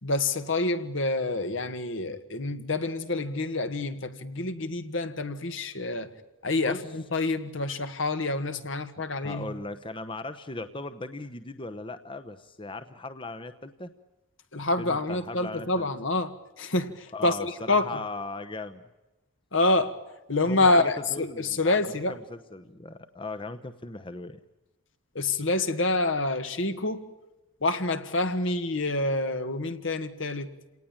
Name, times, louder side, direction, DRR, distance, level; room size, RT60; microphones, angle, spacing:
voice 1, 0.0-6.1 6.4-9.5 14.5-17.9 19.5-20.0 20.3-22.2 25.2-27.1 27.6-30.5, left 2 dB, 65° left, 1.8 m, -27 dB
voice 2, 9.2-13.9 14.8-15.9 17.1-18.8 20.5-24.4, left 2 dB, 25° left, 1.0 m, -38 dB
28.5 x 18.5 x 8.9 m
head